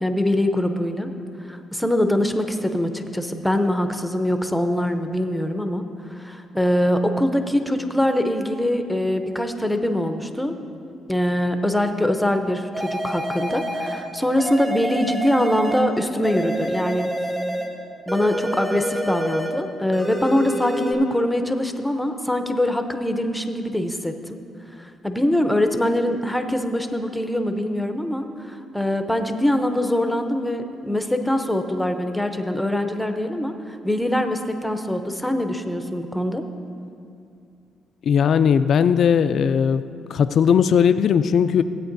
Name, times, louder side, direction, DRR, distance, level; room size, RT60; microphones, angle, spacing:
voice 1, 0.0-1.1 1.5-5.8 6.1-10.6 11.1-17.1 18.1-24.4 25.0-36.4, left 1 dB, 5° left, 6 dB, 0.6 m, -23 dB
sound 1, 12.7-14.0 14.4-15.9 16.2-17.7 18.1-19.6 19.9-20.9, right 1 dB, 25° right, 1.4 m, -28 dB
voice 2, 38.1-39.8 40.1-41.6, left 7 dB, 60° left, 11 dB, 0.3 m, -18 dB
16.5 x 8.6 x 2.6 m, 2.5 s
cardioid pair, 90°, 0 cm